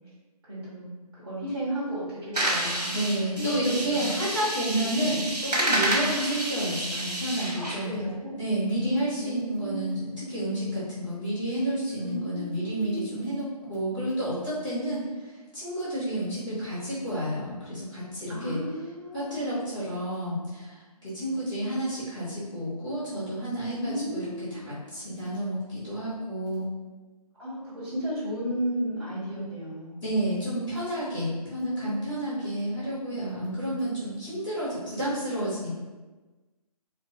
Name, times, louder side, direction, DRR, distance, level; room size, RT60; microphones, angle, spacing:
voice 1, 0.4-2.9 3.3-4.1 4.7-5.3 7.5-8.4 9.2-9.9 12.0-13.1 18.3-19.4 23.8-24.5 27.4-30.0 31.5-32.2, equal, 35° right, -10 dB, 1.1 m, -34 dB
sound 1, 2.3-7.8, right 1 dB, 85° right, 1.0 m, -29 dB
voice 2, 2.9-7.9 8.4-15.1 15.5-18.6 19.1-24.2 24.5-26.6 30.0-35.8, right 1 dB, ahead, -35 dB, 0.3 m, -30 dB
2.9 x 2.5 x 2.7 m, 1.2 s
figure-of-eight pair, 150°, 20 cm